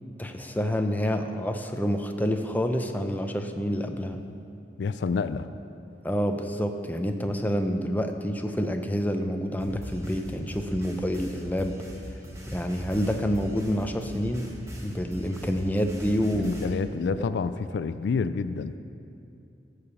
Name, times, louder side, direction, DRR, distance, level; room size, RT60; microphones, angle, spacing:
voice 1, 0.2-4.2 6.0-11.8 12.5-14.5 14.8-16.6 17.2-17.3, equal, 10° left, 5 dB, 0.6 m, -28 dB
voice 2, 4.8-5.5 16.3-18.8, left 5 dB, 80° left, 12 dB, 0.3 m, -28 dB
sound 1, 9.6-16.6, equal, 15° right, 1.3 m, -40 dB
13.5 x 4.9 x 6.9 m, 2.5 s
head